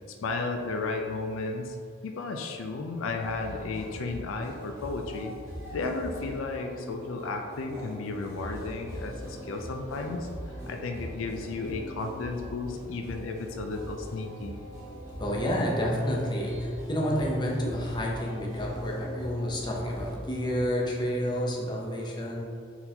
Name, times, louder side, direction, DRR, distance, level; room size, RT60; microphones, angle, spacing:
voice 1, 0.1-1.8 2.0-5.3 5.7-10.3 10.7-14.6, left 3 dB, 85° left, 4 dB, 0.4 m, -33 dB
sound 1, 3.2-20.2, equal, 15° right, 1.2 m, -42 dB
voice 2, 15.2-22.5, equal, 25° left, -3 dB, 0.7 m, -29 dB
4.3 x 4.0 x 2.8 m, 2.4 s
head